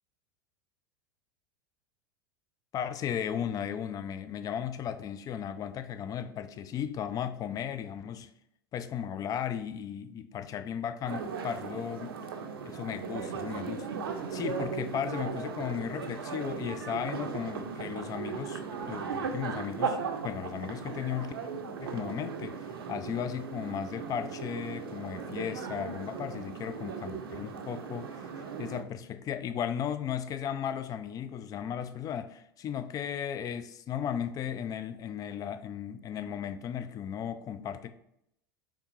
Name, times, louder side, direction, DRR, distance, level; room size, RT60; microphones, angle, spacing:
voice 1, 2.7-8.3 8.7-12.1 12.6-13.9 14.3-18.6 18.9-20.0 20.2-21.3 21.8-28.3 28.6-37.9, left 9 dB, 30° left, 0.3 m, -35 dB
sound 1, 11.0-28.8, right 6 dB, 75° right, 0.5 m, -37 dB
3.6 x 3.5 x 3.0 m
figure-of-eight pair, 85°, 13 cm